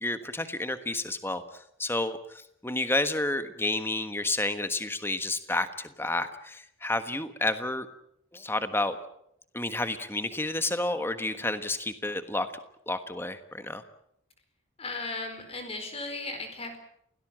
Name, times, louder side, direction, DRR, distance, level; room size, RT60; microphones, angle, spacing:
voice 1, 0.0-7.9 8.3-9.0 9.5-12.5 12.9-13.8, left 2 dB, 10° left, 10 dB, 1.3 m, -30 dB
voice 2, 14.8-16.8, left 3 dB, 30° left, 6 dB, 4.6 m, -36 dB
28.0 x 18.0 x 7.6 m, 0.76 s
head